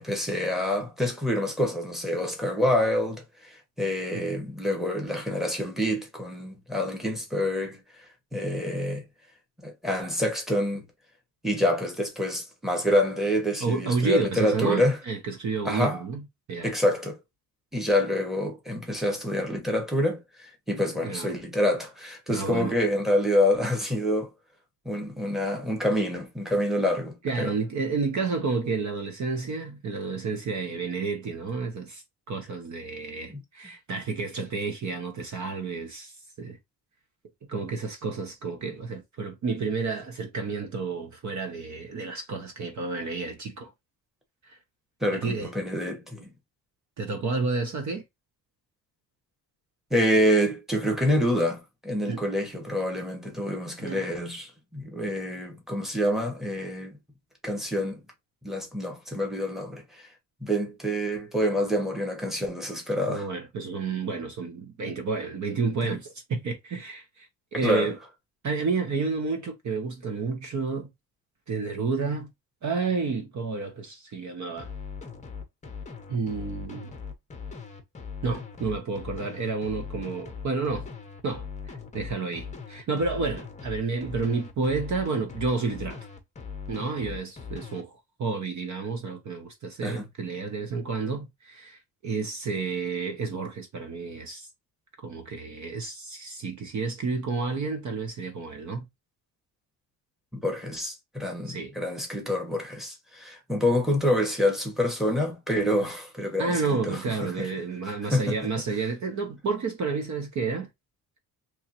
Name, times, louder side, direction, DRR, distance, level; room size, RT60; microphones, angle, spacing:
voice 1, 0.0-8.0 8.3-9.0 9.6-10.9 11.4-15.0 15.6-16.0 16.6-17.2 17.7-24.3 24.8-27.5 33.3-33.4 45.0-46.3 49.9-57.0 57.4-58.0 58.4-60.1 60.4-63.3 67.6-67.9 89.8-90.1 100.3-107.5 108.1-108.4, left 1 dB, ahead, 1.2 m, -27 dB
voice 2, 13.6-16.2 16.5-16.7 21.0-21.4 22.3-22.7 27.2-36.6 37.5-43.7 44.4-44.6 45.1-45.5 47.0-48.0 52.1-52.2 53.8-54.1 63.0-68.0 68.4-70.9 71.5-72.3 72.6-74.7 76.1-76.9 78.2-80.9 81.2-86.1 86.7-94.5 95.0-98.9 101.5-101.7 106.4-110.7, right 4 dB, 45° right, 0.8 m, -30 dB
sound 1, 74.6-87.8, left 5 dB, 20° left, 0.7 m, -40 dB
3.5 x 3.1 x 2.9 m
cardioid pair, 155°, 39 cm